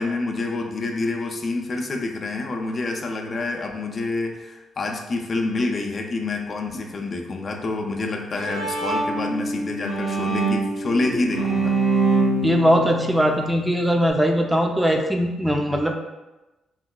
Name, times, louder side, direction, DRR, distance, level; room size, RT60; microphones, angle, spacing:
voice 1, 0.0-11.8, left 3 dB, 50° left, 2 dB, 0.4 m, -27 dB
Bowed string instrument, 8.0-14.1, right 3 dB, 85° right, 1.2 m, -25 dB
voice 2, 12.4-16.0, equal, 15° right, 2 dB, 0.4 m, -20 dB
3.8 x 2.1 x 2.2 m, 1.1 s
supercardioid pair, 55°, 0 cm